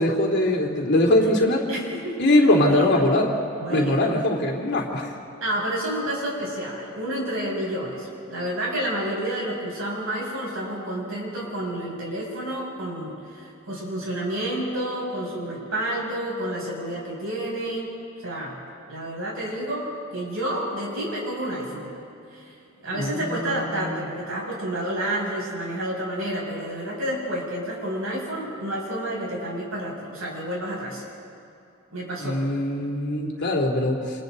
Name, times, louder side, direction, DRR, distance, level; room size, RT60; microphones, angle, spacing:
voice 1, 0.0-1.7 2.2-3.3 3.7-5.1 22.9-24.1 32.2-34.2, left 1 dB, 55° left, 0 dB, 3.2 m, -22 dB
voice 2, 1.7-3.0 3.6-4.1 5.4-17.9 18.2-18.6 18.9-21.9 22.3-22.6 22.8-31.0 31.9-32.4, right 1 dB, 75° right, -3 dB, 7.1 m, -30 dB
29.5 x 28.0 x 4.1 m, 2.6 s
head